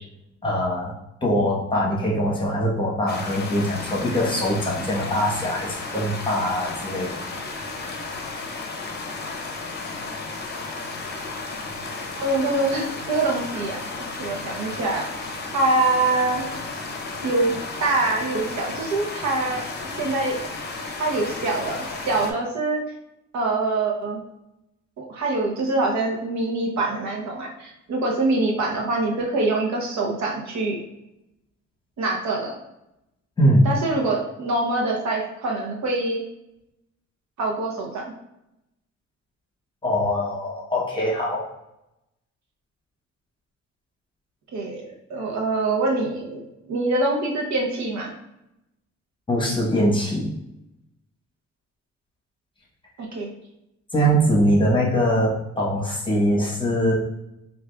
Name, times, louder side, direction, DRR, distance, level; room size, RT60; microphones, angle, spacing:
voice 1, 0.4-0.9 1.2-7.2 33.4-33.7 39.8-41.4 49.3-50.3 53.9-56.9, equal, 15° left, -4 dB, 1.0 m, -22 dB
sound 1, 3.1-22.3, left 3 dB, 35° left, 0.7 m, -33 dB
voice 2, 12.2-13.8 14.2-15.1 15.5-16.5 17.2-17.5 17.8-19.6 19.9-20.4 21.0-22.8 23.3-24.2 25.0-30.8 32.0-32.6 33.6-36.2 37.4-38.1 44.5-48.1 53.0-53.3, right 2 dB, 65° right, 0 dB, 0.8 m, -24 dB
4.7 x 2.5 x 2.3 m, 0.88 s
cardioid pair, 90°, 30 cm